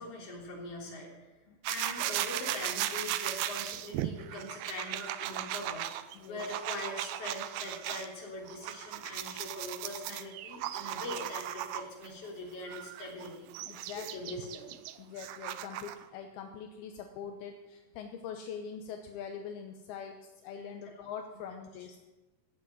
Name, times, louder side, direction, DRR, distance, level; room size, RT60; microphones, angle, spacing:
voice 1, 0.0-1.3 1.7-14.8 20.5-20.9, left 2 dB, 40° left, -2 dB, 4.2 m, -42 dB
sound 1, 1.6-8.1 8.5-12.1 12.7-16.1, right 13 dB, 80° right, 2.4 m, -37 dB
voice 2, 13.6-14.4 15.0-22.1, left 7 dB, 80° left, 5 dB, 2.8 m, -43 dB
16.0 x 8.2 x 9.1 m, 1.1 s
omnidirectional pair, 4.5 m